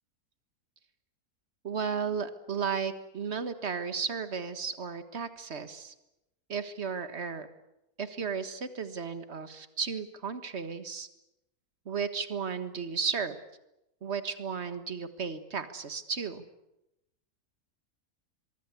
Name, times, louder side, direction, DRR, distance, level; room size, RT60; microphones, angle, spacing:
voice 1, 1.6-5.9 6.5-7.5 8.0-11.1 11.9-13.4 14.0-16.4, right 6 dB, 45° right, 10 dB, 1.8 m, -34 dB
24.0 x 22.5 x 8.5 m, 0.89 s
omnidirectional pair, 1.6 m